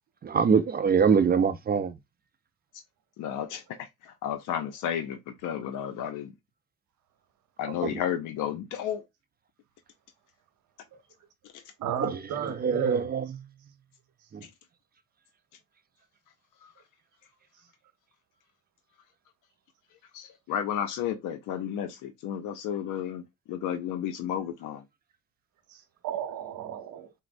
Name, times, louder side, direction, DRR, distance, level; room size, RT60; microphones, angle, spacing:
voice 1, 0.2-2.0 7.8-8.0 12.0-13.4 14.3-14.4, right 6 dB, 30° right, 0.4 m, -24 dB
voice 2, 3.2-6.3 7.6-9.0 11.5-11.6 14.4-14.5 20.1-23.2 23.5-24.8, left 9 dB, 90° left, 0.5 m, -32 dB
voice 3, 11.8-13.0 25.7-27.1, right 8 dB, 80° right, 0.9 m, -34 dB
4.1 x 2.0 x 2.5 m
cardioid pair, 90°, 30 cm